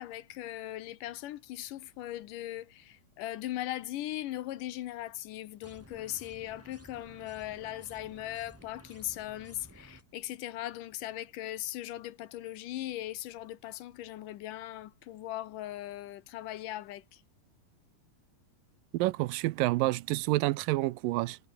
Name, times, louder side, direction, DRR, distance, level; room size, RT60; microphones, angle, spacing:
voice 1, 0.0-17.2, left 14 dB, 75° left, 2.5 m, -39 dB
sound 1, 5.6-10.0, right 1 dB, 5° right, 1.6 m, -54 dB
voice 2, 18.9-21.4, right 18 dB, 80° right, 2.3 m, -28 dB
omnidirectional pair, 4.0 m